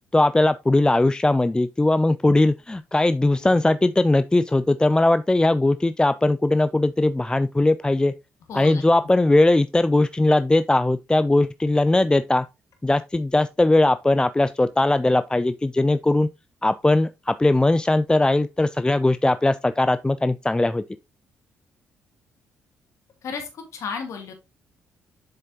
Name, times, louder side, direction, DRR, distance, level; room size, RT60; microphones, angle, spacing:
voice 1, 0.1-8.1 8.5-12.4 12.8-16.3 16.6-20.8, left 2 dB, 15° left, 0.5 m, -19 dB
Bass guitar, 3.4-6.4, left 1 dB, 90° left, 3.7 m, -53 dB
voice 2, 8.5-8.8 23.2-24.3, left 5 dB, 60° left, 1.9 m, -33 dB
7.5 x 6.6 x 2.9 m
hypercardioid pair, 45°, 6 cm